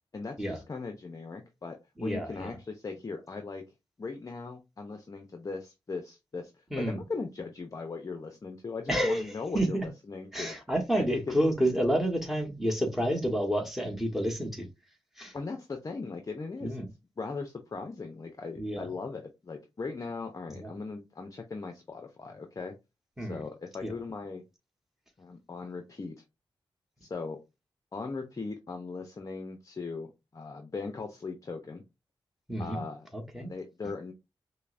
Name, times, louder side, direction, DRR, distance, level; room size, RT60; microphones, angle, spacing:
voice 1, 0.1-3.6 4.0-6.5 6.8-10.5 11.0-11.3 15.3-16.9 17.2-22.8 23.2-24.4 25.2-26.2 27.0-27.4 27.9-31.8 32.6-33.1 33.4-34.1, left 4 dB, 35° left, 0.5 m, -39 dB
voice 2, 2.0-2.5 6.7-7.0 8.9-9.9 10.3-14.7 15.2-15.3 16.6-16.9 18.6-18.8 20.6-20.7 23.2-23.4 23.8-23.9 32.5-32.8 33.1-33.5, equal, 5° right, 1.1 m, -29 dB
5.4 x 2.1 x 2.4 m
wide cardioid pair, 80°, 9 cm